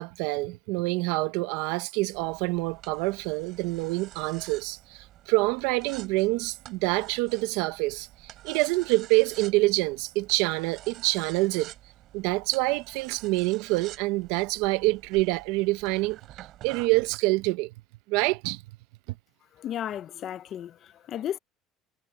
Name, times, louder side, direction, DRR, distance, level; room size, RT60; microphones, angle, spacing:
voice 1, 0.0-8.1 8.4-11.7 12.1-17.7 18.1-18.6, right 22 dB, 80° right, 0.7 m, -26 dB
sound 1, 2.1-17.2, right 14 dB, 55° right, 5.9 m, -49 dB
voice 2, 19.5-21.4, left 10 dB, 45° left, 0.6 m, -34 dB
cardioid pair, 140°, 0 cm